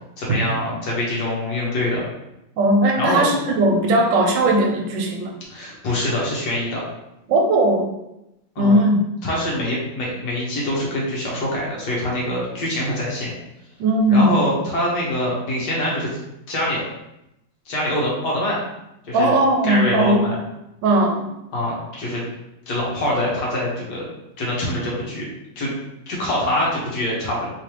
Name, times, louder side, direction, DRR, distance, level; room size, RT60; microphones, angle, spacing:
voice 1, 0.2-2.0 3.0-3.2 5.5-6.8 8.5-8.8 9.2-13.3 14.1-16.1 16.5-16.8 17.7-18.6 19.1-19.3 19.6-20.3 21.5-22.2 22.7-24.0 24.4-25.2 25.6-25.7 26.1-27.5, left 1 dB, 65° left, -4 dB, 1.6 m, -24 dB
voice 2, 2.6-5.3 7.3-7.9 8.6-9.1 13.8-14.5 19.1-20.3 20.8-21.3, right 1 dB, 75° right, 2 dB, 1.3 m, -18 dB
3.6 x 3.3 x 2.9 m, 0.88 s
omnidirectional pair, 2.0 m